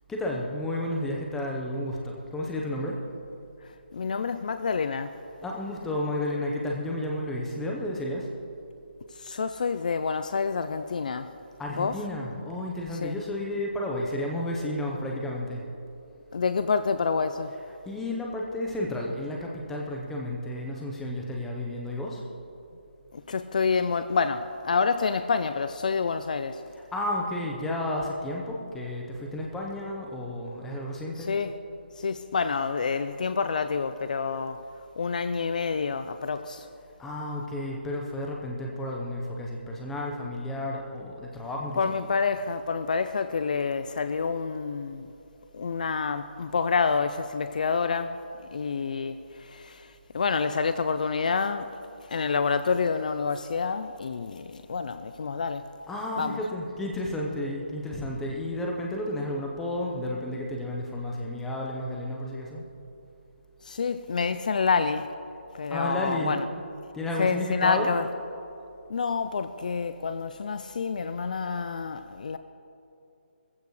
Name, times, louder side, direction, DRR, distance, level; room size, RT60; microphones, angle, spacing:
voice 1, 0.1-3.0 5.4-8.2 11.6-15.6 17.9-22.2 26.9-31.3 37.0-42.0 55.9-62.6 65.7-66.4 66.9-67.9, left 1 dB, 5° left, 1.0 m, -32 dB
voice 2, 3.9-5.1 9.2-11.3 11.8-12.0 13.0-13.2 16.3-17.5 23.1-26.6 31.3-31.5 32.0-34.6 35.0-36.7 41.8-45.1 45.5-48.2 48.5-51.7 52.1-55.6 56.2-56.4 63.6-65.1 65.5-66.5 67.2-68.0 68.9-72.4, left 5 dB, 45° left, 0.5 m, -28 dB
19.5 x 15.5 x 3.3 m
hypercardioid pair, 165°, 6 cm